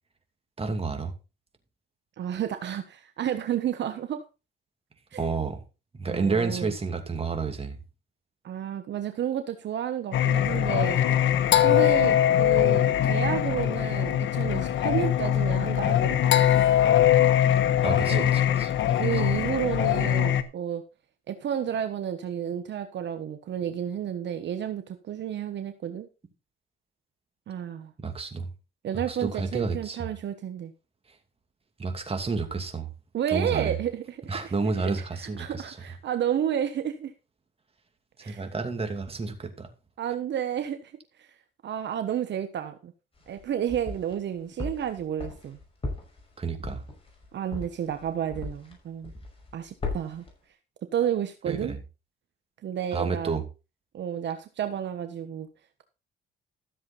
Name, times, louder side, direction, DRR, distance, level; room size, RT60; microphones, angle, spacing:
voice 1, 0.6-1.1 5.2-5.6 5.9-7.8 17.8-19.0 28.0-28.5 28.9-30.1 31.8-32.9 33.3-33.7 34.3-35.8 38.2-39.7 46.4-46.8 51.5-51.8 52.9-53.4, right 4 dB, 30° right, 2.6 m, -30 dB
voice 2, 2.2-4.2 5.1-5.2 6.1-6.7 8.4-11.0 11.6-16.2 18.1-18.3 18.9-20.8 21.3-26.1 27.5-27.9 28.8-30.7 33.1-37.1 38.2-38.5 40.0-40.9 41.2-41.3 41.6-42.9 43.3-45.6 47.3-49.1 49.5-50.2 50.9-51.8 52.6-53.4 53.9-55.5, right 9 dB, 65° right, 1.2 m, -31 dB
Singing, 10.1-20.4, left 11 dB, 75° left, 1.2 m, -22 dB
sound 1, 43.2-44.2 44.6-48.8 49.0-49.5 49.8-50.3, left 3 dB, 30° left, 5.9 m, -36 dB
13.5 x 7.4 x 4.2 m
cardioid pair, 90°, 20 cm